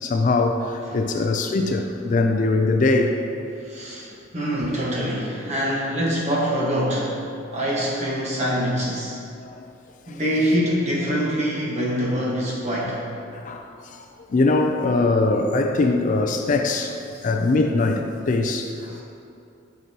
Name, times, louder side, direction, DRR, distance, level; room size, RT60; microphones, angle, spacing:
voice 1, 0.0-3.2 9.4-9.6 10.1-10.2 13.3-13.6 14.3-16.9 17.2-19.0, left 3 dB, 40° left, 4 dB, 0.3 m, -21 dB
voice 2, 0.8-1.1 3.6-4.1 4.3-7.1 7.5-9.2 10.1-13.0 17.1-17.3 18.8-19.0, equal, 35° right, -5 dB, 1.3 m, -25 dB
8.0 x 6.0 x 2.9 m, 2.6 s
head